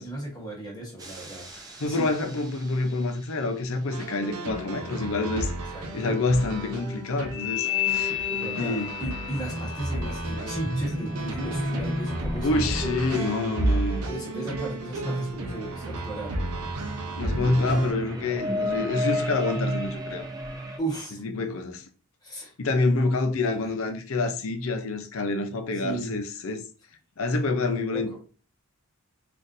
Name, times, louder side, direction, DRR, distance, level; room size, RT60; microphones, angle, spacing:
voice 1, 0.0-1.5 1.8-2.0 5.7-6.2 8.3-12.7 14.1-16.3 20.8-21.2 22.2-22.5 23.6-23.7 25.8-26.2 27.7-28.2, right 2 dB, 20° left, 1.1 m, -36 dB
sound 1, 1.0-2.9 7.3-14.6 15.1-16.7 17.3-20.8, left 3 dB, 15° right, 0.5 m, -33 dB
voice 2, 1.8-8.2 8.6-8.9 12.4-14.0 17.2-20.3 21.2-21.8 22.6-26.6 27.2-28.2, left 2 dB, 65° left, 0.5 m, -27 dB
sound 2, 3.9-17.9, right 1 dB, 85° right, 0.6 m, -32 dB
4.1 x 2.4 x 2.5 m
head